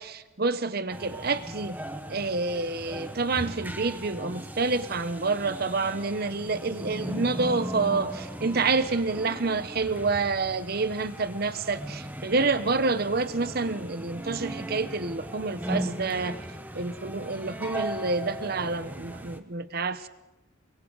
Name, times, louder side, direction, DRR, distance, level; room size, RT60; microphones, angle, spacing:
voice 1, 0.0-1.8 2.1-16.4 16.7-20.1, right 3 dB, 50° right, 0.9 m, -28 dB
sound 1, 0.9-19.4, right 1 dB, 10° right, 1.0 m, -38 dB
29.5 x 22.0 x 4.0 m
head